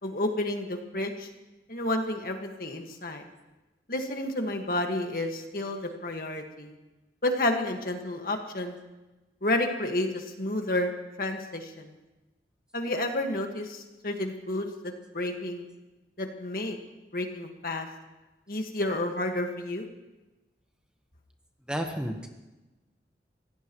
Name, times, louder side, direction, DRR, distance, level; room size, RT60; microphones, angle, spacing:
voice 1, 0.0-1.3 1.7-3.2 3.9-6.7 7.2-8.8 9.4-10.9 11.2-11.9 12.7-15.7 16.2-16.8 17.1-17.9 18.5-19.8, left 1 dB, 55° left, 4 dB, 1.7 m, -30 dB
voice 2, 21.7-22.3, equal, 5° right, 3 dB, 1.1 m, -31 dB
24.0 x 17.0 x 3.1 m, 1.1 s
head